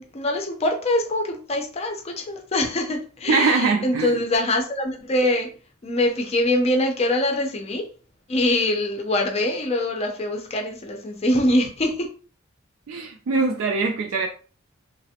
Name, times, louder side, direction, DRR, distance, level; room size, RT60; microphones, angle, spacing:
voice 1, 0.0-5.5 5.8-7.8 8.3-12.1, left 1 dB, 30° left, 3 dB, 0.5 m, -23 dB
voice 2, 3.3-4.2 12.9-14.3, right 4 dB, 75° right, 2 dB, 0.4 m, -22 dB
3.2 x 2.0 x 2.7 m, 0.38 s
head